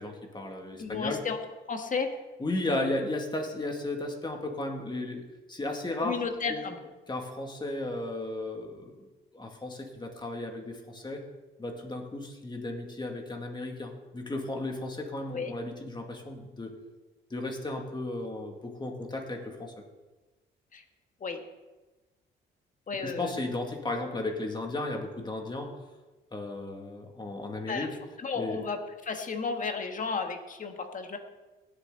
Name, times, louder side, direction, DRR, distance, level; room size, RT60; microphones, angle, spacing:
voice 1, 0.0-1.2 2.4-5.2 5.5-6.2 6.5-6.6 7.1-9.0 9.3-11.2 11.6-16.7 17.3-19.7 23.0-25.7 26.3-28.0 28.3-28.6, left 2 dB, 20° left, 2 dB, 2.2 m, -34 dB
voice 2, 0.8-1.4 1.7-2.1 6.0-6.8 15.3-15.5 20.7-20.8 21.2-21.4 22.9-23.3 27.7-27.9 28.2-28.8 29.0-31.2, left 5 dB, 40° left, 5 dB, 1.6 m, -33 dB
17.0 x 7.7 x 3.9 m, 1.1 s
cardioid pair, 90°, 20 cm